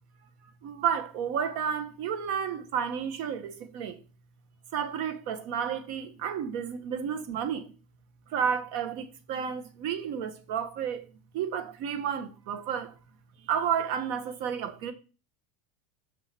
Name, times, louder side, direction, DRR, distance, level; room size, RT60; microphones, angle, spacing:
voice 1, 0.6-4.0 4.7-7.7 8.3-11.0 11.3-12.9 13.4-14.9, right 8 dB, 55° right, 1.4 m, -31 dB
6.3 x 5.5 x 6.8 m
supercardioid pair, 160°, 0 cm